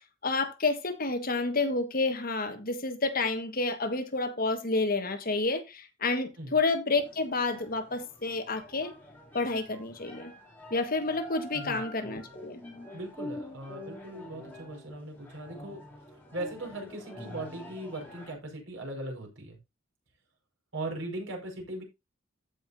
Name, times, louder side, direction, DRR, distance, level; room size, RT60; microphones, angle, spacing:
voice 1, 0.2-8.9 9.3-10.3 10.7-12.6, left 3 dB, 50° left, 1.6 m, -29 dB
sound 1, 7.0-18.3, left 1 dB, 10° left, 3.6 m, -46 dB
voice 2, 12.9-15.9 16.3-19.6 20.7-21.8, right 1 dB, 85° right, 5.2 m, -39 dB
15.0 x 5.8 x 2.7 m
head